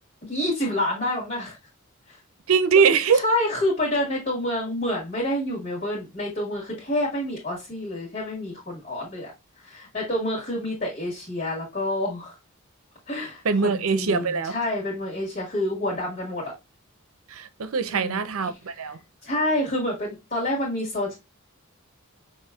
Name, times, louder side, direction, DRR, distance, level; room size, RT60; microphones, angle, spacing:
voice 1, 0.2-1.6 2.1-2.2 3.1-9.3 9.6-12.4 13.1-16.5 17.9-18.3 19.2-21.2, left 1 dB, 40° left, 1.8 m, -28 dB
voice 2, 2.5-3.2 13.4-14.5 17.3-19.0, right 5 dB, 75° right, 0.6 m, -22 dB
5.8 x 3.0 x 2.3 m
head